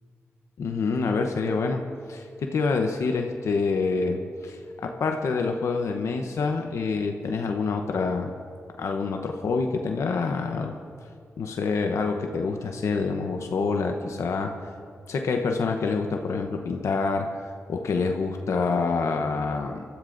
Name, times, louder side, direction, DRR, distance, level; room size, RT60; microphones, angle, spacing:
voice 1, 0.6-1.8 2.1-8.3 8.8-10.8 11.4-14.5 15.1-17.3 17.7-19.8, left 4 dB, 75° left, 4 dB, 0.9 m, -27 dB
25.0 x 13.5 x 2.6 m, 2.3 s
cardioid pair, 65°, 5 cm